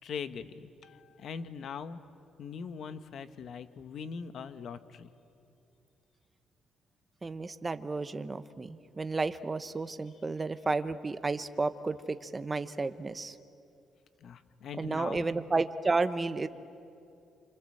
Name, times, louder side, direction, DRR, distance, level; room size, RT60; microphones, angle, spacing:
voice 1, 0.0-2.0 2.4-5.1 14.2-15.3, left 6 dB, 65° left, 11 dB, 1.3 m, -41 dB
voice 2, 7.2-13.4 14.8-16.5, right 3 dB, 25° right, 11 dB, 1.1 m, -32 dB
28.5 x 25.5 x 7.9 m, 2.6 s
cardioid pair, 95°, 0 cm